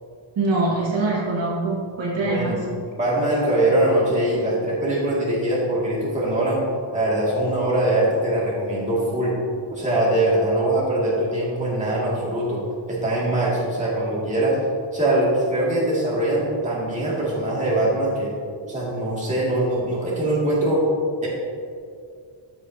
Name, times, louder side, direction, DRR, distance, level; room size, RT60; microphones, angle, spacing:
voice 1, 0.4-2.6, right 2 dB, 65° right, -4 dB, 1.9 m, -23 dB
voice 2, 2.2-2.6 3.0-6.6 6.9-9.3 9.7-12.6 12.9-14.6 14.9-18.3 18.7-20.8 21.2-21.3, right 1 dB, 15° right, -7 dB, 2.3 m, -22 dB
14.5 x 7.0 x 2.8 m, 2.3 s
wide cardioid pair, 175°, 49 cm